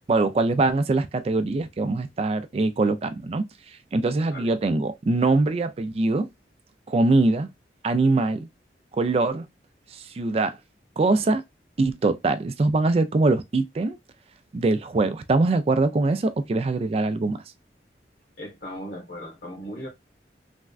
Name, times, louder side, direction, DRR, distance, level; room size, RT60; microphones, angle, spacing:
voice 1, 0.0-6.3 6.9-7.5 7.8-8.5 8.9-9.5 9.9-10.6 11.0-11.4 11.8-14.0 14.5-17.4, right 3 dB, 35° right, 0.3 m, -23 dB
voice 2, 18.4-19.9, equal, 70° left, 1.4 m, -37 dB
3.4 x 2.1 x 2.3 m
head